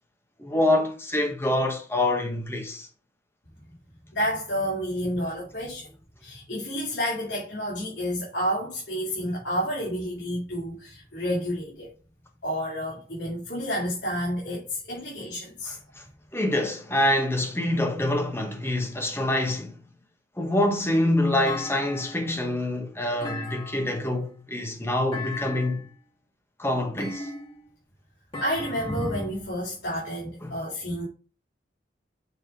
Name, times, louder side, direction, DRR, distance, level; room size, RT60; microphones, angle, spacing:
voice 1, 0.4-2.9 16.0-16.1 16.3-19.8 20.4-25.9 26.6-27.3 30.4-30.6, left 1 dB, 15° left, 1.1 m, -26 dB
voice 2, 4.1-5.9 6.2-11.9 12.4-15.8 28.4-31.1, equal, 75° left, 2.8 m, -30 dB
Thump thud, 21.5-22.4 23.2-24.1 25.1-25.9 27.0-27.7 28.3-29.4, left 3 dB, 30° left, 2.2 m, -37 dB
7.0 x 3.6 x 4.9 m
head